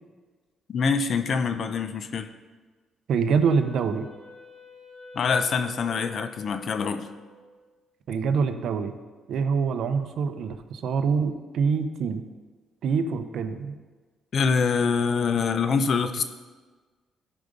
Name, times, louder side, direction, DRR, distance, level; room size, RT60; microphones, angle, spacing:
voice 1, 0.7-2.3 5.1-7.1 14.3-16.2, left 5 dB, 55° left, 9 dB, 0.8 m, -25 dB
voice 2, 3.1-4.1 8.1-9.0 9.3-12.2 12.8-13.8, right 5 dB, 70° right, 9 dB, 0.8 m, -25 dB
Wind instrument woodwind instrument, 3.4-7.8, left 1 dB, 15° left, 2.2 m, -48 dB
14.0 x 5.1 x 5.3 m, 1.4 s
cardioid pair, 90°, 0 cm